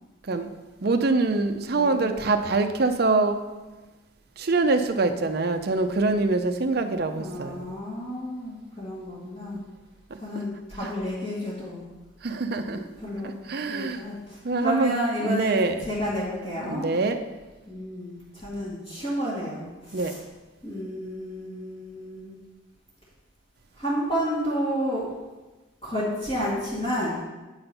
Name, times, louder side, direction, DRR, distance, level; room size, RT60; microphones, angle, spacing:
voice 1, 0.8-3.4 4.4-7.7 12.2-12.8 13.5-14.0 14.4-14.9 15.2-15.7 16.7-17.2 19.9-20.1, right 3 dB, 50° right, 7 dB, 0.6 m, -24 dB
voice 2, 1.7-2.2 7.1-9.6 10.2-11.8 12.7-16.9 17.7-20.2 20.6-22.3 23.7-25.1 25.8-27.2, equal, 30° left, -10 dB, 2.0 m, -31 dB
8.6 x 4.4 x 5.4 m, 1.2 s
head